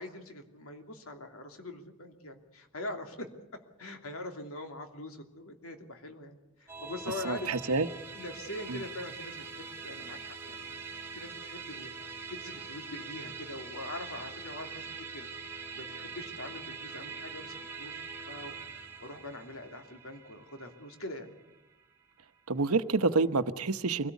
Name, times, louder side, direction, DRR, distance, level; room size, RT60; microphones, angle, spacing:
voice 1, 0.0-3.3 3.8-7.8 8.1-10.8 11.1-14.9 15.1-21.4, left 2 dB, 75° left, 5 dB, 2.9 m, -43 dB
Musical instrument, 6.7-22.2, right 5 dB, 10° right, 2.0 m, -44 dB
voice 2, 7.2-7.9 8.7-8.8 22.5-24.1, right 3 dB, 90° right, 12 dB, 1.0 m, -28 dB
24.0 x 17.5 x 8.3 m, 0.98 s
head